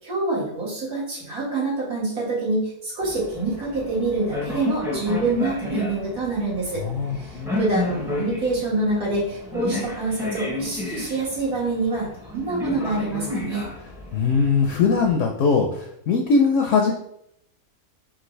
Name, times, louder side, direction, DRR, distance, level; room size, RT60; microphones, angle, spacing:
voice 1, 0.0-6.8 7.1-13.7, right 3 dB, 80° right, -8 dB, 2.3 m, -26 dB
sound 1, 3.0-15.1, left 3 dB, 5° right, 0.4 m, -32 dB
voice 2, 6.8-7.3 14.1-16.9, left 5 dB, 65° left, 2 dB, 0.8 m, -20 dB
5.9 x 2.5 x 3.1 m, 0.74 s
omnidirectional pair, 1.6 m